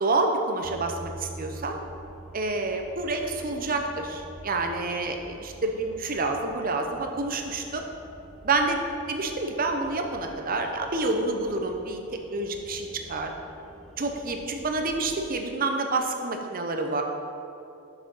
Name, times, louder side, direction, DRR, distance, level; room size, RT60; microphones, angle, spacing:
voice 1, 0.0-1.7 2.3-7.8 8.4-13.3 14.0-17.0, right 3 dB, 40° right, 4 dB, 0.7 m, -28 dB
sound 1, 0.6-15.2, right 1 dB, ahead, 0.6 m, -47 dB
6.2 x 6.2 x 5.4 m, 2.7 s
head